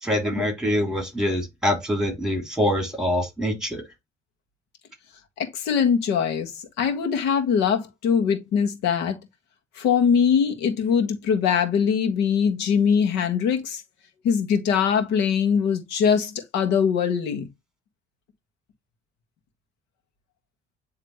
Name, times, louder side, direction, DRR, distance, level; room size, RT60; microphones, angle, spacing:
voice 1, 0.0-3.8, left 1 dB, 5° right, 3.1 m, -25 dB
voice 2, 5.4-6.5 6.8-9.2 9.7-13.8 14.2-17.5, left 7 dB, 90° left, 1.6 m, -22 dB
9.5 x 3.3 x 3.1 m
cardioid pair, 110°, 17 cm